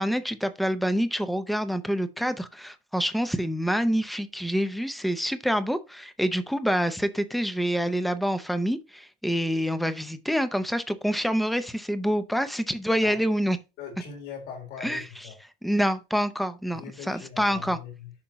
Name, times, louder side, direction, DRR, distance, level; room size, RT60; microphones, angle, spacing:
voice 1, 0.0-13.6 14.8-15.0 15.6-16.8 17.1-17.8, equal, ahead, 0.6 m, -26 dB
voice 2, 13.8-15.4 16.7-18.1, left 7 dB, 65° left, 3.5 m, -40 dB
8.8 x 5.8 x 3.0 m
cardioid pair, 180°, 18 cm